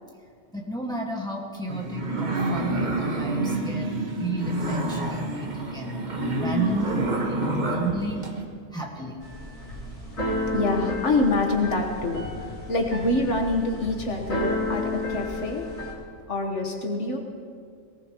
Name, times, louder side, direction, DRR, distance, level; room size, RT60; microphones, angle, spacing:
voice 1, 0.5-6.0 6.3-7.0 7.4-8.2 8.7-9.2, right 1 dB, 5° left, -1 dB, 1.6 m, -32 dB
sound 1, 1.7-8.4, right 2 dB, 35° right, 1.4 m, -28 dB
Keyboard (musical), 9.2-15.9, left 2 dB, 85° left, 4.2 m, -32 dB
voice 2, 10.5-15.7 16.3-17.2, left 2 dB, 65° left, 2 dB, 1.5 m, -26 dB
22.0 x 19.0 x 3.0 m, 2.1 s
omnidirectional pair, 1.3 m